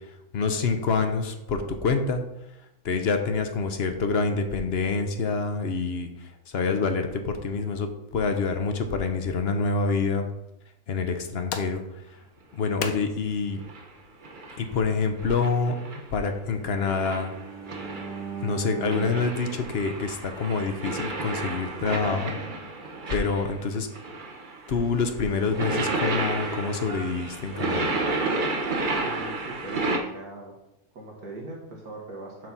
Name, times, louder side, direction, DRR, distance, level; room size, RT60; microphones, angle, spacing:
voice 1, 0.3-2.2 2.8-10.3 10.9-11.8 12.5-13.6 14.6-15.8 16.1-17.3 18.4-22.4 23.1-23.9 24.7-27.9, left 4 dB, 50° left, 6 dB, 0.9 m, -27 dB
sound 1, 11.0-16.1, left 6 dB, 75° left, 1.2 m, -41 dB
sound 2, 13.5-13.8 14.2-14.8 15.2-16.2 16.8-18.4 18.8-23.7 23.9-30.0, right 2 dB, 40° right, 0.9 m, -31 dB
Bowed string instrument, 16.5-20.7, right 5 dB, ahead, 1.4 m, -39 dB
voice 2, 29.0-30.5 30.9-32.5, right 2 dB, 80° right, -1 dB, 2.2 m, -40 dB
7.6 x 4.1 x 6.0 m, 0.89 s
omnidirectional pair, 1.5 m